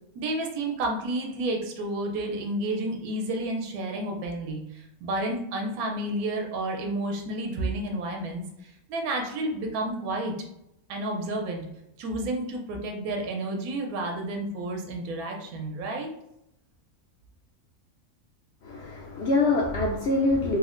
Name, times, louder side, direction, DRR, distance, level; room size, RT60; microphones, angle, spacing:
voice 1, 0.1-10.3 10.9-11.7 12.0-16.1, right 1 dB, 75° right, 2 dB, 1.1 m, -31 dB
voice 2, 18.6-20.6, left 2 dB, 70° left, -2 dB, 0.6 m, -25 dB
3.1 x 2.1 x 3.6 m, 0.80 s
omnidirectional pair, 1.6 m